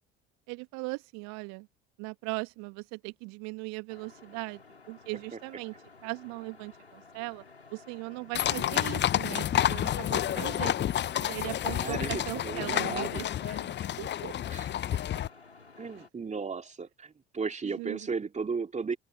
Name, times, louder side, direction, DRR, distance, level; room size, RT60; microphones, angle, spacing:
voice 1, 0.5-1.7 2.0-4.6 4.9-5.7 6.0-7.4 7.7-10.7 11.2-14.3 17.6-18.1, right 30 dB, 55° right, 2.0 m, -39 dB
sound 1, 3.9-16.1, left 4 dB, 85° left, 5.7 m, -54 dB
sound 2, 8.3-15.3, left 11 dB, 35° left, 1.0 m, -29 dB
voice 2, 11.8-13.2 14.5-15.0 15.8-19.0, right 5 dB, 20° right, 2.7 m, -35 dB
open air
figure-of-eight pair, 60°, 32 cm